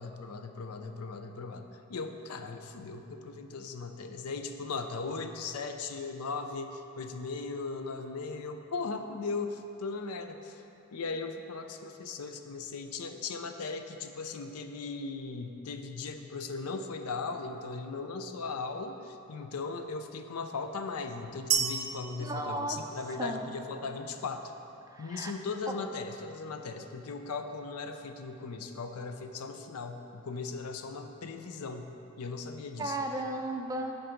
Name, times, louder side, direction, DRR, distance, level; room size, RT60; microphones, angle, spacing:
voice 1, 0.0-10.6 10.9-24.5 25.0-33.0, left 4 dB, 90° left, 7 dB, 0.5 m, -38 dB
sound 1, 21.5-23.5, right 8 dB, 90° right, 0.7 m, -33 dB
voice 2, 22.2-22.8 23.2-23.4 24.9-25.3 32.8-34.0, right 2 dB, 15° right, 3 dB, 0.4 m, -34 dB
10.0 x 4.0 x 5.0 m, 2.9 s
head